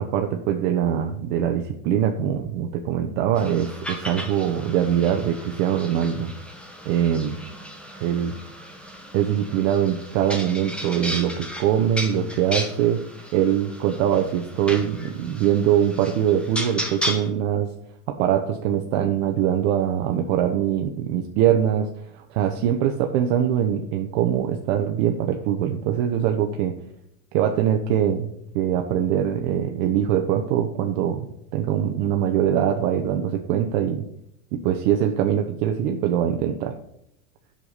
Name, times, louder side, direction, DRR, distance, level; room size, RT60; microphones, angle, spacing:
voice 1, 0.0-6.3 6.8-7.4 8.0-8.3 9.1-13.0 13.3-17.7 18.1-21.9 22.1-26.7 27.3-28.3 28.5-31.3 31.5-34.0 34.5-36.7, right 9 dB, 55° right, 4 dB, 1.2 m, -23 dB
sound 1, 3.4-17.3, equal, ahead, 1.7 m, -35 dB
8.1 x 7.1 x 5.7 m, 0.78 s
hypercardioid pair, 120°, 45 cm